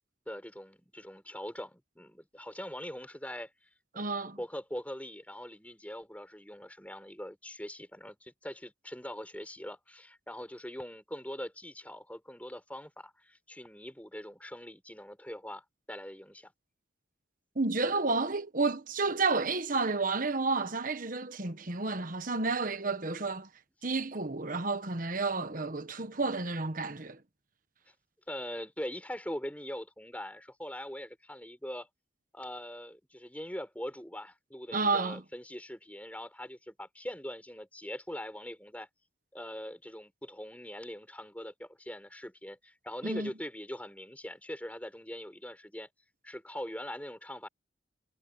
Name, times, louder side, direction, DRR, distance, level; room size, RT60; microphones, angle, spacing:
voice 1, 0.3-3.5 4.1-16.5 28.3-31.9 32.3-38.9 39.3-45.9 46.2-47.5, equal, 5° left, 7.0 m, -42 dB
voice 2, 3.9-4.4 17.5-23.5 23.8-27.2 34.7-35.2 43.0-43.3, right 3 dB, 45° right, 1.3 m, -31 dB
head